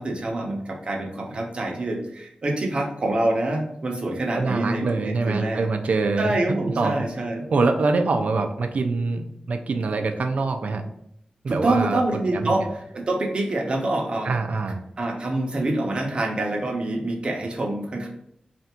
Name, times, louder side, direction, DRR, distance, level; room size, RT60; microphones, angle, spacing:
voice 1, 0.0-5.7 6.2-7.4 11.5-14.3 15.0-18.1, right 2 dB, 40° right, 0 dB, 0.8 m, -26 dB
voice 2, 4.3-6.3 6.8-7.1 7.5-10.8 11.4-12.0 12.3-12.7 14.2-14.8, right 3 dB, 60° right, 6 dB, 0.5 m, -24 dB
3.4 x 2.5 x 4.3 m, 0.73 s
wide cardioid pair, 130°, 3 cm